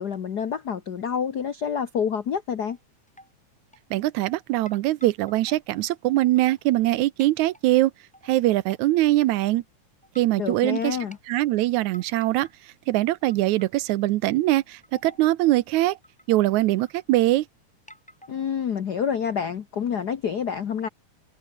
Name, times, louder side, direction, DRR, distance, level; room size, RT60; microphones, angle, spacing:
voice 1, 0.0-2.8 10.4-11.2 18.3-20.9, left 7 dB, 75° left, 0.9 m, -28 dB
sound 1, 2.7-2.8 3.1-3.3 3.7-4.4 4.6-6.9 7.2-7.6 8.1-8.8 9.2-9.3 10.0-10.4 10.9-11.2 11.9-12.8 13.1-13.7 14.0-14.1 14.5-15.3 15.8-15.9 16.0-17.3 17.9-18.7, equal, ahead, 4.5 m, -51 dB
voice 2, 3.9-7.9 8.3-9.6 10.2-11.0 11.3-16.0 16.3-17.5, right 16 dB, 80° right, 2.0 m, -22 dB
omnidirectional pair, 3.5 m